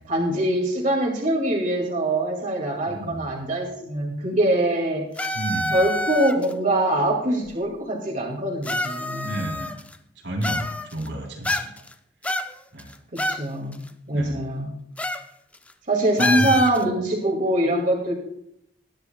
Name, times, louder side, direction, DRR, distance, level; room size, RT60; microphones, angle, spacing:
voice 1, 0.1-5.4 5.7-9.3 13.1-13.8 14.1-14.7 15.9-18.1, right 1 dB, 45° right, -1 dB, 2.3 m, -23 dB
voice 2, 2.9-3.2 5.3-5.8 9.2-9.7 10.2-11.8 12.7-12.9 13.2-13.3 14.1-14.4 16.2-16.5, right 1 dB, 90° right, -1 dB, 3.6 m, -31 dB
sound 1, 5.2-6.5 7.5-7.6 8.6-9.9 10.4-11.1 11.4-11.9 12.2-13.4 13.7-13.8 15.0-15.2 15.5-15.7 16.2-16.8, left 1 dB, 10° left, 0.4 m, -27 dB
20.5 x 10.5 x 2.3 m, 0.75 s
head